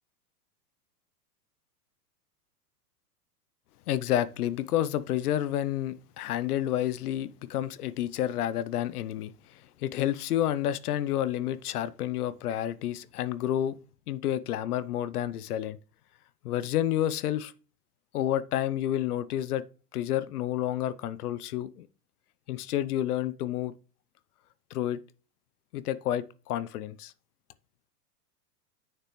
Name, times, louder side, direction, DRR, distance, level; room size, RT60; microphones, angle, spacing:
voice 1, 3.9-13.8 14.1-15.8 16.4-17.5 18.1-19.6 19.9-21.9 22.5-23.7 24.7-25.0 25.7-27.1, left 12 dB, 70° left, 0.7 m, -30 dB
8.9 x 6.8 x 3.1 m
hypercardioid pair, 110°, 47 cm